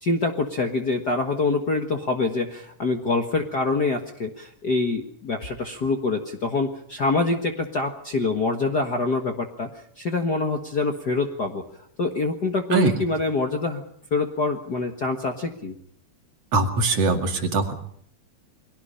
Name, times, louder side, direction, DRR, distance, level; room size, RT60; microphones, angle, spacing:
voice 1, 0.0-9.7 10.0-11.6 12.0-13.8 14.1-15.7, left 3 dB, 40° left, 4 dB, 1.6 m, -25 dB
voice 2, 16.5-17.7, right 3 dB, 55° right, 4 dB, 3.2 m, -21 dB
29.5 x 22.0 x 5.6 m, 0.64 s
omnidirectional pair, 3.6 m